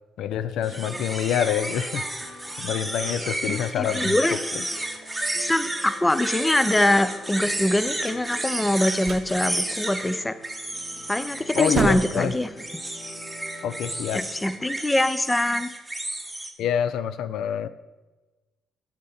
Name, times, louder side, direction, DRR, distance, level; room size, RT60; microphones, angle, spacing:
voice 1, 0.2-4.2 4.5-4.6 11.5-12.3 13.6-14.2 16.6-17.7, left 9 dB, 80° left, 13 dB, 0.4 m, -27 dB
sound 1, 0.6-14.5, equal, 45° left, 2.0 m, -45 dB
sound 2, 0.6-16.5, right 1 dB, 10° right, 1.1 m, -32 dB
voice 2, 3.5-4.4 5.4-10.3 11.1-12.5 14.1-15.7, left 1 dB, 15° left, 12 dB, 0.5 m, -23 dB
sound 3, 8.6-9.4 11.0-11.2 11.5-12.3, right 5 dB, 60° right, 0.7 m, -29 dB
8.4 x 4.5 x 7.0 m, 1.2 s
cardioid pair, 90°, 0 cm